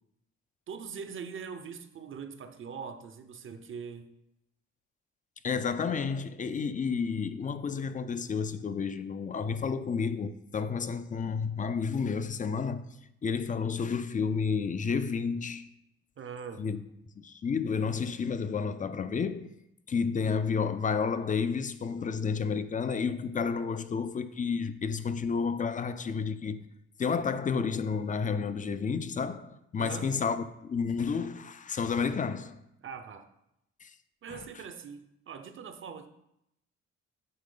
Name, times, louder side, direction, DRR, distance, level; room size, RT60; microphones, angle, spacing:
voice 1, 0.7-4.1 16.2-16.7 29.8-30.1 32.8-33.3 34.2-36.1, right 6 dB, 45° right, 0.6 m, -42 dB
voice 2, 5.4-12.8 13.2-15.7 16.6-16.8 17.2-19.5 19.9-26.6 27.0-32.6 33.8-33.9 34.3-34.5, left 5 dB, 25° left, 0.4 m, -31 dB
8.6 x 3.2 x 3.8 m
cardioid pair, 90°, 30 cm